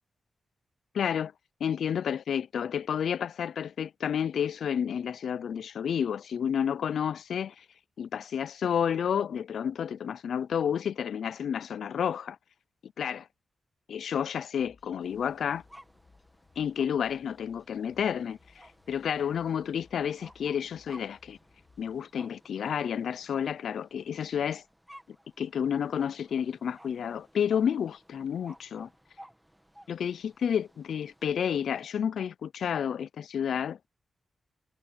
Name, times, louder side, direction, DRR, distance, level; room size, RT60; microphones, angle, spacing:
voice 1, 0.9-1.3 1.6-7.6 8.0-12.4 13.0-13.2 13.9-15.6 16.6-18.4 18.9-21.4 21.8-24.6 25.4-28.9 29.9-33.9, left 8 dB, 85° left, 0.4 m, -30 dB
sound 1, 14.5-22.1, left 4 dB, 35° left, 1.7 m, -63 dB
sound 2, 15.0-31.8, equal, 5° right, 1.4 m, -57 dB
wide cardioid pair, 170°, 0 cm